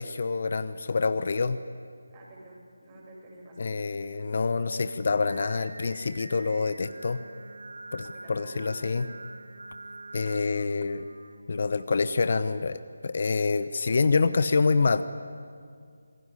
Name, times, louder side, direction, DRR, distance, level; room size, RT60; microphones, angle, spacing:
voice 1, 0.0-1.6 3.6-7.2 7.9-9.1 10.1-11.1 11.5-15.0, left 4 dB, 50° left, 12 dB, 1.0 m, -26 dB
voice 2, 2.1-3.7 4.1-4.3 8.0-9.0, right 1 dB, 25° right, -1 dB, 7.2 m, -49 dB
Singing, 5.3-11.8, right 2 dB, 75° right, 2.0 m, -46 dB
27.0 x 21.0 x 10.0 m, 2.1 s
figure-of-eight pair, 160°, 0 cm